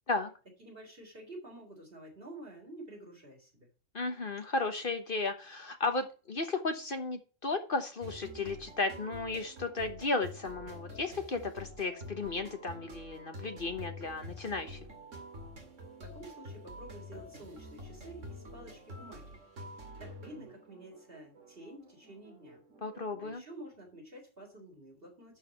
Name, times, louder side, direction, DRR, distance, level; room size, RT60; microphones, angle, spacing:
voice 1, 0.6-3.7 16.0-19.4 20.0-22.6 23.2-25.4, right 1 dB, 50° right, -1 dB, 4.1 m, -50 dB
voice 2, 3.9-14.8 22.8-23.4, left 3 dB, 50° left, 7 dB, 1.3 m, -34 dB
sound 1, 8.0-23.3, equal, 90° right, 2.5 m, -48 dB
11.5 x 4.9 x 5.8 m, 0.35 s
omnidirectional pair, 1.3 m